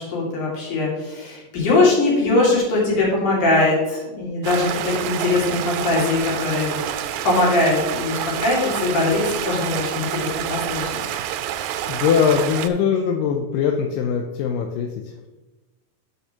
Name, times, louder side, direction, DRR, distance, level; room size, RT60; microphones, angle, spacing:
voice 1, 0.0-6.8 7.2-11.0 11.7-11.9, left 2 dB, 70° left, -5 dB, 3.8 m, -21 dB
Stream, 4.4-12.7, right 10 dB, 85° right, 1.6 m, -28 dB
voice 2, 11.9-15.3, left 7 dB, 90° left, 3 dB, 2.3 m, -21 dB
10.0 x 6.6 x 2.9 m, 1.1 s
omnidirectional pair, 3.8 m